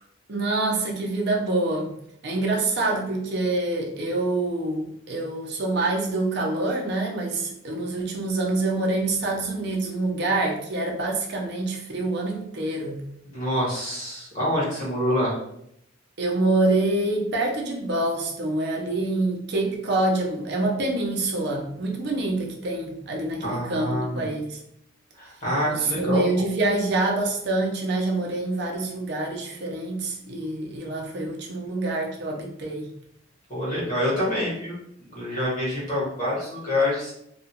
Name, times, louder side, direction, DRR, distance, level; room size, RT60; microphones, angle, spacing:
voice 1, 0.3-1.9 2.2-13.0 16.2-24.6 25.6-32.9, right 2 dB, 55° right, 0 dB, 0.6 m, -26 dB
voice 2, 13.2-15.4 23.4-24.3 25.2-26.4 33.5-37.1, left 1 dB, 40° left, -7 dB, 1.4 m, -26 dB
2.8 x 2.3 x 2.8 m, 0.75 s
head